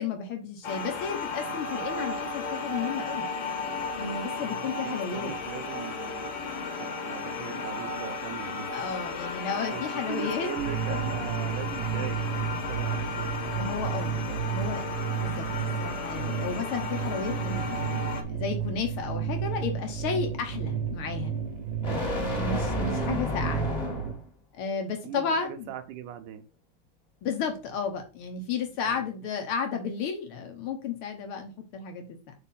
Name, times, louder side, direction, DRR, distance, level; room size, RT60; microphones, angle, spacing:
voice 1, 0.0-3.3 4.0-5.3 8.7-10.5 13.5-14.8 15.1-15.5 15.8-21.4 22.3-23.8 24.5-25.7 27.2-32.3, left 6 dB, 80° left, 1.2 m, -33 dB
sound 1, 0.6-18.2, left 3 dB, 60° left, 1.8 m, -34 dB
voice 2, 4.4-6.3 6.8-8.8 9.1-9.3 9.7-13.4 13.7-14.7 25.0-26.4 28.9-29.1, right 10 dB, 85° right, 2.2 m, -41 dB
sound 2, 10.6-24.1, right 8 dB, 65° right, 1.7 m, -32 dB
sound 3, 17.3-24.3, left 1 dB, 20° left, 1.2 m, -34 dB
5.0 x 4.1 x 5.4 m
omnidirectional pair, 3.5 m